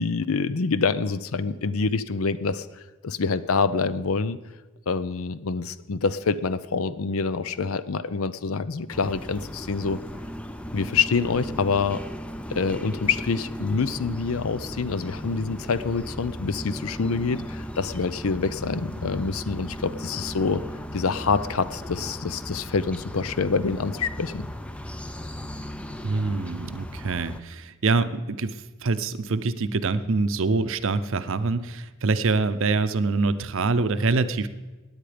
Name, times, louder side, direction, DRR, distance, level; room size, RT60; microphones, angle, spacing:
voice 1, 0.0-2.7 3.0-4.4 4.9-10.0 10.7-12.0 12.5-20.7 20.9-24.5, left 4 dB, 70° left, 15 dB, 0.6 m, -26 dB
sound 1, 8.9-27.4, equal, 5° left, 0.5 m, -36 dB
voice 2, 26.0-34.5, right 3 dB, 60° right, 12 dB, 0.6 m, -25 dB
16.5 x 9.8 x 5.1 m, 1.2 s
head